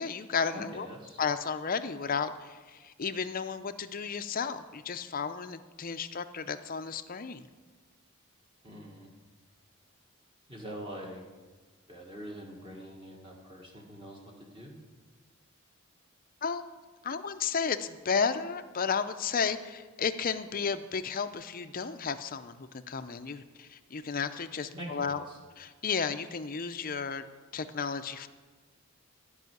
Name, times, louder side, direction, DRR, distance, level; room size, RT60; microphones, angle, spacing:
voice 1, 0.0-0.9 1.2-7.4 16.4-16.6 17.0-25.2 25.6-27.2 27.5-28.3, left 6 dB, 40° left, 10 dB, 0.6 m, -33 dB
voice 2, 0.5-1.2 8.6-9.1 10.5-11.2 11.9-14.7 24.7-25.4, equal, 25° right, -2 dB, 1.6 m, -44 dB
13.5 x 5.6 x 9.3 m, 1.4 s
head